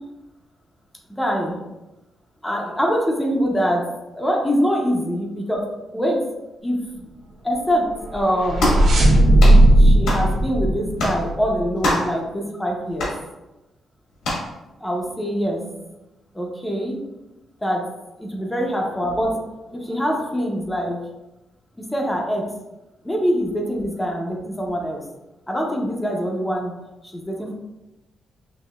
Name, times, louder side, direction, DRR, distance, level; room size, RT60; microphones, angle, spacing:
voice 1, 1.1-1.5 2.4-3.9 4.1-5.6 5.9-6.2 6.6-7.1 7.4-7.8 8.1-8.7 9.8-13.1 14.8-15.9 16.3-17.0 17.6-17.8 18.2-21.0 21.9-22.5 23.0-25.0 25.5-26.7 27.0-27.5, equal, 10° left, -1 dB, 0.7 m, -24 dB
sound 1, 8.0-11.6, right 1 dB, 65° right, 1.0 m, -15 dB
sound 2, 8.6-8.9 9.4-9.6 10.1-10.3 11.0-11.2 11.8-12.1 13.0-13.2 14.2-14.5, left 1 dB, 90° left, 1.4 m, -23 dB
6.2 x 2.7 x 2.3 m, 1.0 s
cardioid pair, 125°, 0 cm